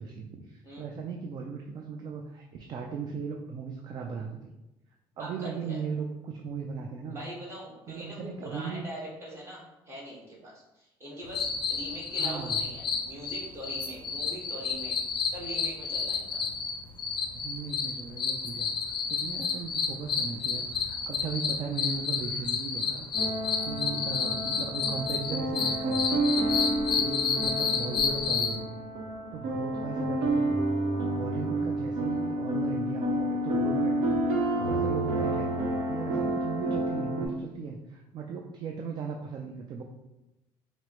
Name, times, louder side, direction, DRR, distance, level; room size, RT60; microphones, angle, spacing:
voice 1, 0.0-4.5 5.2-7.2 7.9-8.9 12.2-12.6 17.4-18.7 19.1-23.1 23.6-26.2 26.9-28.8 29.3-30.6 31.0-39.8, right 5 dB, 45° right, 2 dB, 0.3 m, -37 dB
voice 2, 5.2-5.8 7.1-15.0 15.3-16.4, right 1 dB, 25° right, -6 dB, 1.3 m, -42 dB
sound 1, 11.3-28.5, left 5 dB, 45° left, 0.4 m, -30 dB
sound 2, 23.1-37.3, right 1 dB, 85° right, 0.7 m, -29 dB
4.6 x 2.0 x 2.9 m, 0.96 s
cardioid pair, 125°, 11 cm